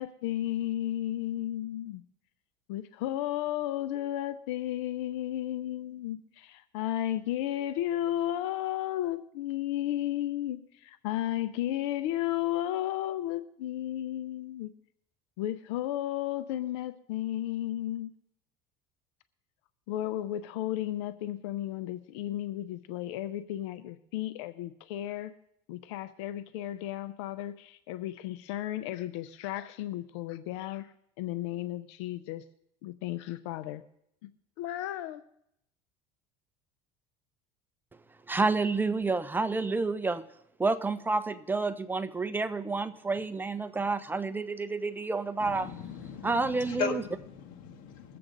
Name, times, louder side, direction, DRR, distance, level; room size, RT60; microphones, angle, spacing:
voice 1, 0.0-2.0 2.7-14.7 15.4-18.1 19.9-25.3 25.7-32.4 32.8-33.8 34.6-35.2, left 13 dB, 85° left, 0.6 m, -33 dB
voice 2, 38.3-40.2 40.6-45.7 46.2-47.0, right 3 dB, 15° right, 0.7 m, -29 dB
voice 3, 45.4-48.2, left 5 dB, 65° left, 1.7 m, -37 dB
21.5 x 7.7 x 3.9 m
supercardioid pair, 105°, 14 cm